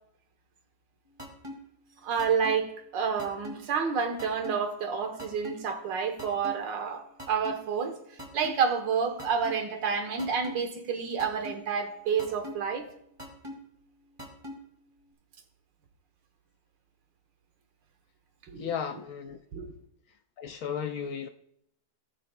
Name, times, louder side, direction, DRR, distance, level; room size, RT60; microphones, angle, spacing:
sound 1, 1.2-1.5 2.2-2.5 3.2-3.5 4.2-4.5 5.2-5.5 6.2-6.5 7.2-7.5 8.2-8.5 9.2-9.5 10.2-10.5 11.2-11.5 12.2-12.5 13.2-13.5 14.2-14.5, left 1 dB, 15° right, 1.9 m, -39 dB
voice 1, 2.0-8.0 8.3-12.9 18.5-18.7 19.5-19.7, right 6 dB, 85° right, 1.7 m, -29 dB
voice 2, 18.6-19.4 20.4-21.3, left 7 dB, 70° left, 0.9 m, -34 dB
17.5 x 6.5 x 2.2 m
omnidirectional pair, 1.9 m